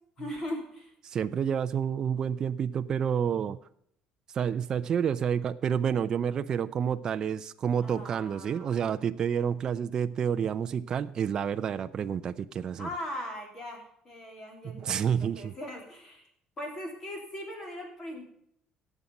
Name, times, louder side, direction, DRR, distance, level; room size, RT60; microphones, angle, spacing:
voice 1, 0.2-0.9 7.8-8.9 12.8-16.2 16.6-18.3, left 1 dB, 25° left, 2 dB, 3.3 m, -40 dB
voice 2, 1.1-3.6 4.3-12.9 14.6-15.5, right 8 dB, 30° right, 10 dB, 0.4 m, -29 dB
17.0 x 7.2 x 5.3 m, 0.70 s
cardioid pair, 175°, 2 cm